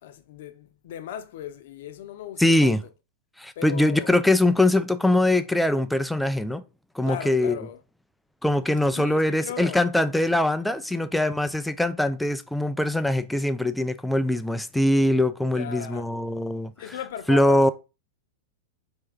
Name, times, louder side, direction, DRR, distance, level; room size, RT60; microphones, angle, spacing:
voice 1, 0.0-2.8 3.6-4.1 7.0-7.8 8.9-9.8 10.9-11.1 15.5-16.1 16.8-17.7, left 10 dB, 65° left, 0.7 m, -37 dB
voice 2, 2.4-2.8 3.4-6.6 7.0-7.6 8.4-16.7 17.3-17.7, left 1 dB, 5° left, 0.4 m, -22 dB
4.5 x 2.8 x 3.6 m
hypercardioid pair, 115°, 0 cm